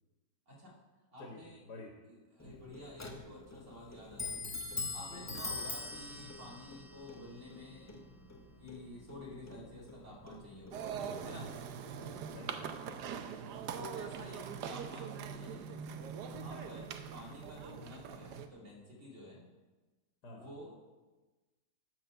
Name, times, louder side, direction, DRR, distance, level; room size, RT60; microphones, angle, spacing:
voice 1, 0.5-0.8 1.1-1.6 2.1-4.4 4.9-8.0 8.6-11.5 13.7-15.7 16.2-19.5 20.3-20.7, left 1 dB, 45° right, -4 dB, 2.9 m, -51 dB
voice 2, 1.2-2.0 2.4-2.6 5.2-5.4 12.0-13.1 20.2-20.5, left 2 dB, 85° left, 1 dB, 2.1 m, -51 dB
Clock, 2.4-11.7, left 3 dB, 20° left, 0.4 m, -44 dB
sound 1, 10.7-18.5, right 7 dB, 90° right, 1.3 m, -42 dB
12.5 x 4.6 x 6.7 m, 1.2 s
omnidirectional pair, 1.7 m